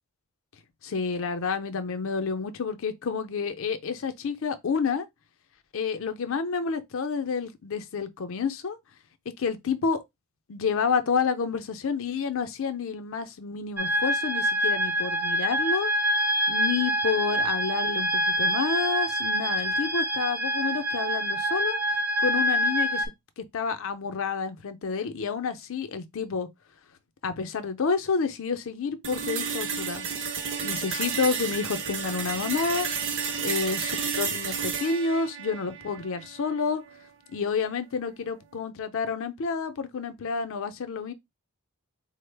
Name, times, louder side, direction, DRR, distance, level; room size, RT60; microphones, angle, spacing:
voice 1, 0.8-5.1 5.7-8.8 9.4-10.0 10.5-15.9 16.5-21.8 22.2-23.1 23.4-26.5 27.2-30.1 30.6-32.9 33.4-36.8 37.3-41.1, left 5 dB, 60° left, 0.5 m, -29 dB
sound 1, 13.8-23.1, equal, 10° right, 0.4 m, -26 dB
sound 2, 29.0-37.1, right 6 dB, 60° right, 0.7 m, -32 dB
3.7 x 2.0 x 3.2 m
head